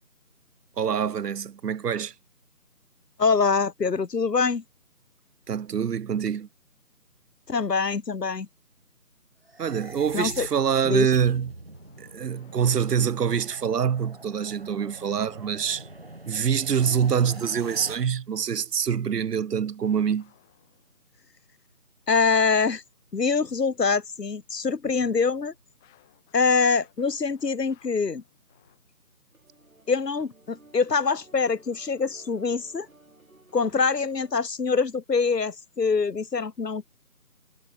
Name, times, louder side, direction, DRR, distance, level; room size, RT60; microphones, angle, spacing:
voice 1, 0.8-2.1 5.5-6.5 9.6-11.5 12.0-15.9 16.3-20.3, right 7 dB, 80° right, 0.6 m, -25 dB
voice 2, 3.2-4.6 7.5-8.5 10.1-10.5 10.8-11.1 22.1-22.8 23.1-25.5 26.3-28.2 29.9-32.9 33.5-37.0, left 5 dB, 90° left, 1.1 m, -24 dB
sound 1, 9.4-17.9, right 2 dB, 40° right, 1.1 m, -43 dB
sound 2, 11.7-13.7 15.4-16.2 19.8-21.3 24.9-29.2, left 17 dB, ahead, 2.4 m, -62 dB
sound 3, 29.3-34.4, right 2 dB, 60° right, 7.2 m, -56 dB
figure-of-eight pair, 170°, 47 cm